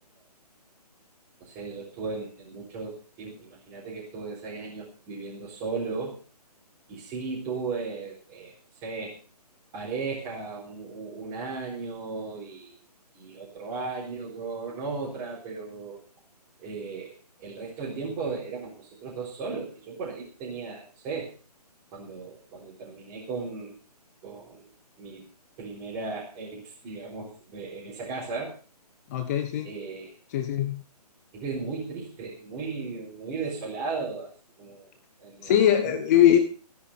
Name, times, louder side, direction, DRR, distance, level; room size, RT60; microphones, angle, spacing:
voice 1, 1.4-6.1 6.9-8.6 8.8-9.2 9.7-12.8 13.1-16.0 16.6-21.3 21.9-23.7 24.2-24.7 25.0-25.2 25.6-28.5 29.6-30.1 31.3-34.3 34.6-34.9 35.2-35.5 35.8-36.0, right 4 dB, 15° right, -7 dB, 4.1 m, -36 dB
voice 2, 29.1-29.7 30.3-30.8 35.4-36.4, left 10 dB, 25° left, 9 dB, 1.2 m, -21 dB
16.5 x 10.0 x 5.7 m, 0.40 s
figure-of-eight pair, 140°, 21 cm